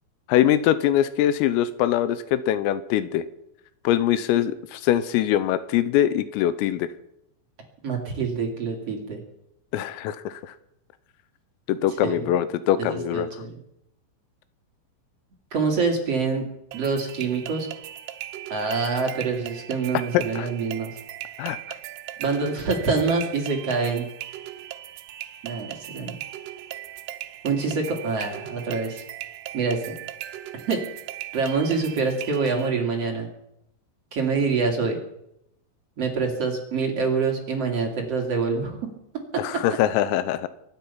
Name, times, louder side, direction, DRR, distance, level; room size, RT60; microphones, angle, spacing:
voice 1, 0.3-3.2 3.8-6.9 9.7-10.5 11.7-13.3 20.1-20.5 21.4-21.6 39.4-40.5, left 11 dB, 85° left, 14 dB, 3.4 m, -23 dB
voice 2, 7.8-9.2 12.0-12.2 12.8-13.6 15.5-16.5 16.7-17.7 18.5-20.9 22.2-24.0 25.4-26.2 27.4-29.0 29.5-29.9 30.7-30.8 31.3-33.3 34.1-35.0 36.0-38.8 39.3-39.4, right 4 dB, 40° right, 1 dB, 2.5 m, -25 dB
sound 1, 16.7-32.7, right 13 dB, 90° right, 2.4 m, -38 dB
24.0 x 10.5 x 5.7 m, 0.80 s
omnidirectional pair, 6.0 m